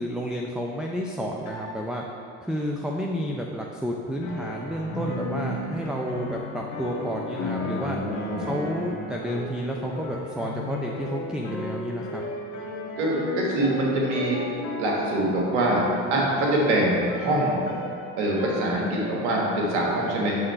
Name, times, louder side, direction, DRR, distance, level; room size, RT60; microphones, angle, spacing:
voice 1, 0.0-2.0 2.4-8.0 8.4-12.2, equal, ahead, 0 dB, 0.4 m, -31 dB
sound 1, 1.4-2.0 4.2-19.1, left 2 dB, 70° left, 1.5 m, -35 dB
voice 2, 7.5-8.5 13.0-14.4 14.8-17.6 18.2-20.3, right 1 dB, 85° right, -2 dB, 1.3 m, -24 dB
7.8 x 3.8 x 4.4 m, 2.7 s
hypercardioid pair, 75°, 34 cm